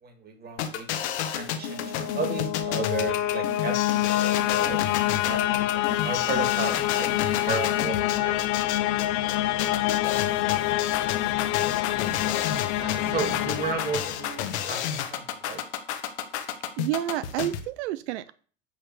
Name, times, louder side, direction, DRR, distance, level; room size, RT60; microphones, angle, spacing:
voice 1, 0.0-0.9 1.3-4.8 5.3-5.6 6.0-8.4 12.8-15.6, right 4 dB, 30° right, 5 dB, 2.3 m, -34 dB
sound 1, 0.6-17.6, left 10 dB, 80° left, 1.4 m, -31 dB
sound 2, 1.6-14.7, left 14 dB, 60° left, 0.7 m, -26 dB
voice 2, 13.0-13.4 16.4-16.5 16.8-18.3, right 13 dB, 85° right, 15 dB, 0.5 m, -31 dB
9.9 x 3.4 x 6.3 m, 0.43 s
supercardioid pair, 105°, 33 cm